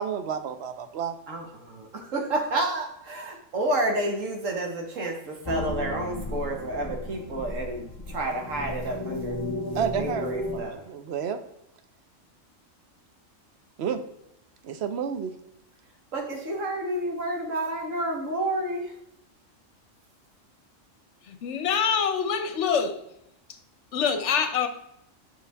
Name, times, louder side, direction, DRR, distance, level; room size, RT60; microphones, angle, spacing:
voice 1, 0.0-1.2 9.7-11.4 13.8-14.0 14.6-15.3, right 7 dB, 60° right, 9 dB, 0.9 m, -30 dB
voice 2, 1.3-9.5 9.8-10.8 16.1-18.9, right 1 dB, 75° right, 2 dB, 1.7 m, -30 dB
sound 1, 5.5-10.6, left 1 dB, 25° left, 0.4 m, -34 dB
voice 3, 21.2-23.0 23.5-23.6 23.9-24.7, left 6 dB, 65° left, 8 dB, 1.1 m, -25 dB
6.8 x 5.9 x 3.4 m, 0.80 s
omnidirectional pair, 1.3 m